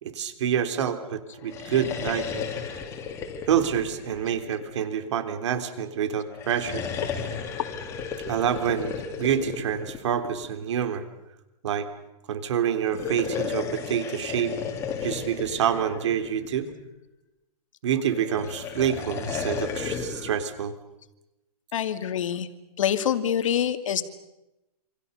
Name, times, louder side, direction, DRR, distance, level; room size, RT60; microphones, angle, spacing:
voice 1, 0.0-2.5 3.5-6.8 8.3-11.0 11.6-11.9 12.3-14.5 15.0-16.7 17.8-20.7, right 9 dB, 50° right, 10 dB, 3.4 m, -27 dB
sound 1, 1.4-5.0 6.3-10.6 12.8-16.8 18.1-20.4, left 6 dB, 15° left, 2.8 m, -34 dB
voice 2, 21.7-22.5 22.8-24.0, left 9 dB, 55° left, 10 dB, 2.5 m, -25 dB
28.0 x 27.0 x 6.7 m, 0.95 s
hypercardioid pair, 170°, 19 cm